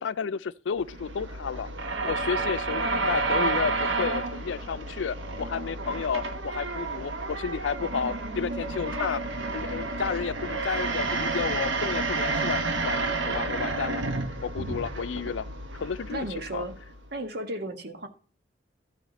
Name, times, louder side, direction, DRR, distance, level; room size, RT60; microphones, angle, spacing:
voice 1, 0.0-1.7 2.0-9.2 9.5-14.0 14.4-15.5 15.7-16.3 16.5-16.6, left 6 dB, 85° left, 0.4 m, -32 dB
sound 1, 0.8-17.1, right 3 dB, 90° right, 1.2 m, -30 dB
voice 2, 16.1-16.7 17.1-18.1, right 1 dB, 60° right, 1.6 m, -34 dB
14.0 x 4.9 x 4.1 m
head